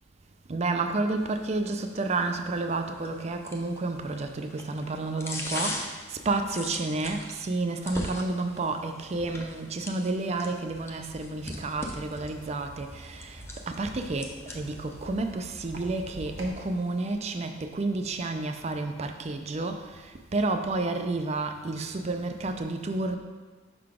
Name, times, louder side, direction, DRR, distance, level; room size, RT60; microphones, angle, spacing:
voice 1, 0.5-23.2, right 3 dB, 35° right, 6 dB, 0.4 m, -30 dB
sound 1, 1.2-17.1, left 1 dB, 15° left, 0.6 m, -42 dB
sound 2, 11.3-16.5, right 1 dB, 85° right, 1.1 m, -46 dB
5.7 x 3.8 x 4.9 m, 1.3 s
head